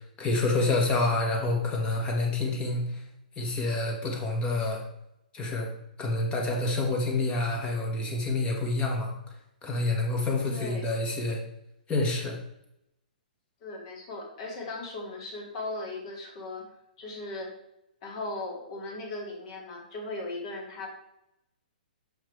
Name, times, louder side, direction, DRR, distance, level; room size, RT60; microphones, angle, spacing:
voice 1, 0.2-3.0 3.4-4.8 5.3-5.7 6.0-9.1 9.6-11.4 11.9-12.4, left 2 dB, 20° left, 0 dB, 1.6 m, -28 dB
voice 2, 10.4-10.9 13.6-16.7 17.0-17.5 18.0-20.9, left 2 dB, 45° left, -2 dB, 2.5 m, -37 dB
7.0 x 5.6 x 3.2 m, 0.83 s
hypercardioid pair, 135°, 5 cm